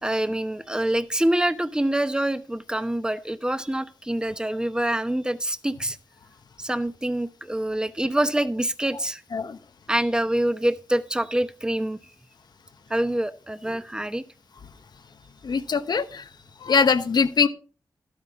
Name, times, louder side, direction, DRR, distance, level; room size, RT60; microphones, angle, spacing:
voice 1, 0.0-6.0 6.6-9.2 9.9-12.0 12.9-14.2, right 1 dB, 10° right, 11 dB, 0.9 m, -25 dB
voice 2, 15.4-16.2 16.6-17.5, left 5 dB, 75° left, 10 dB, 0.9 m, -22 dB
12.5 x 9.5 x 3.6 m, 0.36 s
cardioid pair, 65°, 7 cm